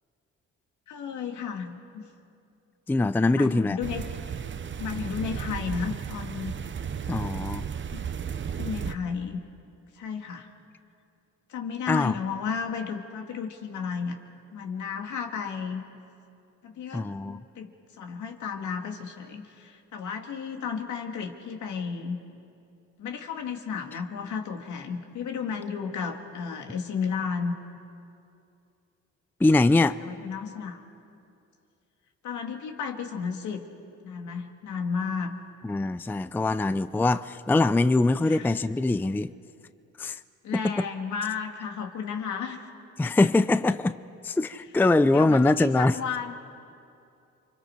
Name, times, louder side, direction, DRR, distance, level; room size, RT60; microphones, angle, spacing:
voice 1, 0.9-2.1 3.3-4.1 4.8-6.5 7.9-8.0 8.6-9.4 9.9-10.5 11.5-14.2 14.5-15.8 16.6-22.2 23.0-27.5 30.0-30.8 32.2-33.6 34.0-35.4 38.2-38.6 40.4-42.7 43.0-43.3 45.1-46.3, left 6 dB, 75° left, 4 dB, 2.1 m, -33 dB
voice 2, 2.9-3.8 7.1-7.6 11.9-12.1 16.9-17.4 29.4-30.0 35.6-39.3 40.0-40.2 40.5-40.8 43.0-43.9 44.2-46.0, left 2 dB, 5° left, 14 dB, 0.4 m, -23 dB
sound 1, 3.8-8.9, right 7 dB, 40° right, 0.8 m, -34 dB
29.5 x 24.5 x 4.5 m, 2.6 s
cardioid pair, 90°, 30 cm